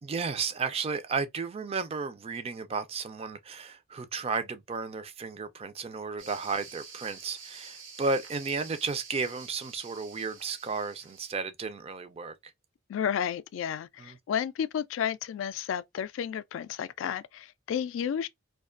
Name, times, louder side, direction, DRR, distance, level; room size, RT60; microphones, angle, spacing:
voice 1, 0.0-12.4 14.0-14.2, right 4 dB, 30° right, 0.3 m, -33 dB
sound 1, 6.2-11.3, right 5 dB, 80° right, 0.8 m, -48 dB
voice 2, 12.9-18.3, left 8 dB, 85° left, 0.3 m, -32 dB
2.4 x 2.3 x 2.3 m
head